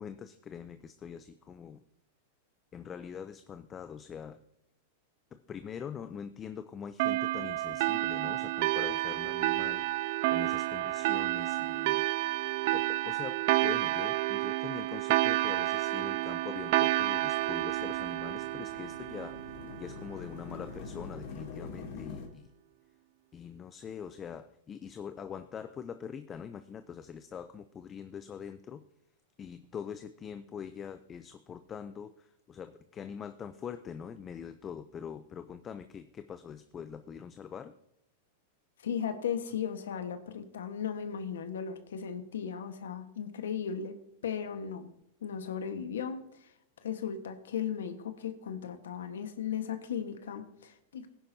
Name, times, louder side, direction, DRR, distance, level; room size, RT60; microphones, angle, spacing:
voice 1, 0.0-1.8 2.7-4.4 5.3-12.1 12.7-22.5 23.3-28.8 29.4-37.8, left 7 dB, 25° left, 10 dB, 0.5 m, -43 dB
sound 1, 7.0-20.1, right 18 dB, 55° right, 0.3 m, -30 dB
sound 2, 15.3-22.3, left 5 dB, 60° left, 2.6 m, -46 dB
voice 2, 38.8-44.0 44.2-44.9 45.2-46.5 46.8-51.1, left 8 dB, 90° left, 8 dB, 1.3 m, -36 dB
18.0 x 10.5 x 2.7 m, 0.78 s
hypercardioid pair, 135°, 0 cm